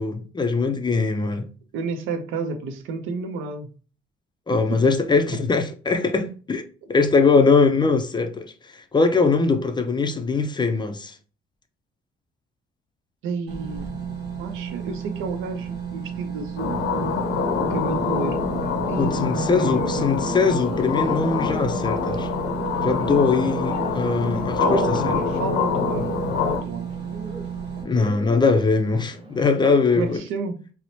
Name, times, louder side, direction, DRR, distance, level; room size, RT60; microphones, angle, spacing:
voice 1, 0.0-1.4 4.5-11.1 19.0-22.3 22.8-25.1 27.8-30.2, left 4 dB, 20° left, 0.4 m, -21 dB
voice 2, 1.7-3.7 4.7-4.8 13.2-14.0 14.4-17.2 17.6-20.1 24.6-26.9 30.0-30.6, right 4 dB, 85° right, 0.5 m, -31 dB
sound 1, 13.5-27.8, right 7 dB, 60° right, 0.9 m, -33 dB
sound 2, 16.6-26.6, left 5 dB, 85° left, 0.6 m, -25 dB
Bird, 20.5-30.2, right 2 dB, 30° right, 0.6 m, -40 dB
2.8 x 2.0 x 2.6 m
cardioid pair, 90°, 20 cm